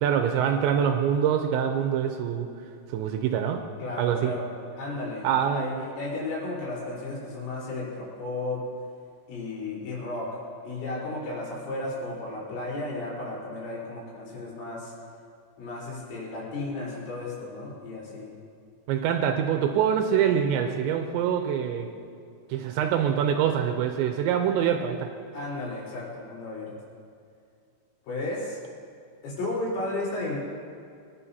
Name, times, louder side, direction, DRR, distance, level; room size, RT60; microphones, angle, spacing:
voice 1, 0.0-2.5 2.9-3.6 4.0-4.3 5.2-5.7 18.9-21.9 22.5-25.1, right 8 dB, 80° right, 5 dB, 2.7 m, -25 dB
voice 2, 3.8-8.6 9.3-10.3 10.6-14.9 15.6-18.3 25.3-26.7 28.0-28.6 29.2-30.4, left 2 dB, 80° left, -6 dB, 6.6 m, -34 dB
23.5 x 11.0 x 2.8 m, 2.4 s
omnidirectional pair, 5.7 m